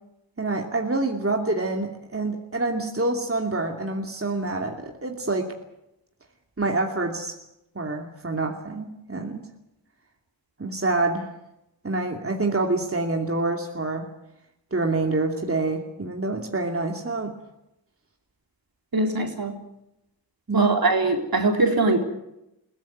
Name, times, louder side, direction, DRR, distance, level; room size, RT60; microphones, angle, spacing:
voice 1, 0.4-5.5 6.6-7.3 7.7-9.4 10.6-11.3 11.8-14.1 14.7-17.3 20.5-20.8, right 2 dB, 30° right, 2 dB, 2.8 m, -26 dB
voice 2, 18.9-19.6 20.5-22.0, right 2 dB, 55° right, 4 dB, 3.9 m, -21 dB
22.0 x 16.5 x 9.4 m, 0.87 s
cardioid pair, 50°, 43 cm